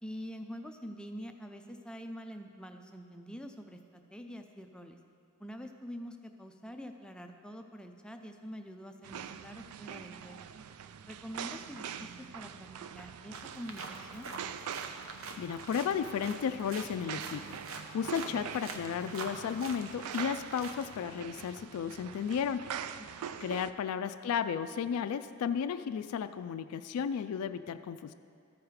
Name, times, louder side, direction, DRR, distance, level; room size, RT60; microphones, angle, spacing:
voice 1, 0.0-5.0 5.4-10.5 11.1-12.7 12.9-14.3 23.2-23.4, equal, 5° left, 5 dB, 0.4 m, -45 dB
sound 1, 9.0-23.7, right 8 dB, 85° right, 0.3 m, -44 dB
sound 2, 13.3-21.0, right 4 dB, 65° right, 0.8 m, -45 dB
voice 2, 15.4-17.6 17.9-22.7 23.4-28.1, left 7 dB, 80° left, 11 dB, 0.3 m, -34 dB
13.5 x 4.9 x 4.7 m, 2.3 s
head